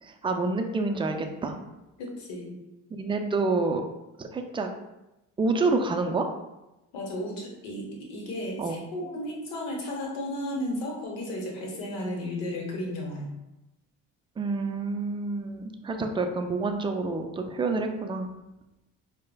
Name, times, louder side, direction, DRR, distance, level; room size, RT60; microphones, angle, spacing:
voice 1, 0.0-1.6 2.9-3.8 4.2-4.7 5.4-6.3 8.6-8.8 14.4-18.3, right 3 dB, 15° right, 5 dB, 0.3 m, -28 dB
voice 2, 2.0-2.6 6.9-13.3, left 1 dB, 85° left, -1 dB, 1.0 m, -34 dB
4.6 x 2.1 x 2.3 m, 0.95 s
supercardioid pair, 75°, 37 cm